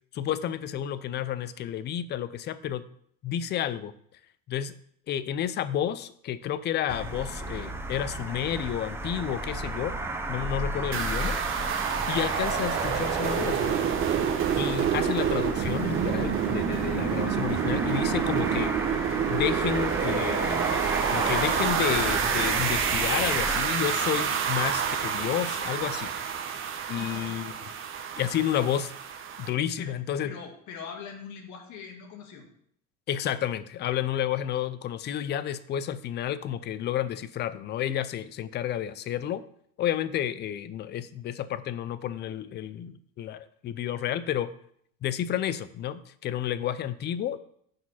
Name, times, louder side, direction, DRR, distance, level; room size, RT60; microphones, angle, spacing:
voice 1, 0.1-2.9 3.2-3.9 4.5-4.7 5.1-9.9 10.3-11.4 12.1-13.8 14.5-18.7 19.3-20.7 21.1-26.1 26.9-27.5 28.2-28.9 29.4-30.3 33.1-39.4 39.8-44.5 45.0-47.4, left 10 dB, 35° left, 14 dB, 0.4 m, -30 dB
sound 1, 6.9-23.6, right 2 dB, 5° right, 0.6 m, -33 dB
sound 2, 10.9-29.5, right 8 dB, 40° right, 0.9 m, -28 dB
voice 2, 27.0-27.5 29.8-29.9 30.2-32.4, left 6 dB, 65° left, 3 dB, 1.7 m, -42 dB
6.3 x 4.7 x 5.6 m, 0.66 s
cardioid pair, 140°, 32 cm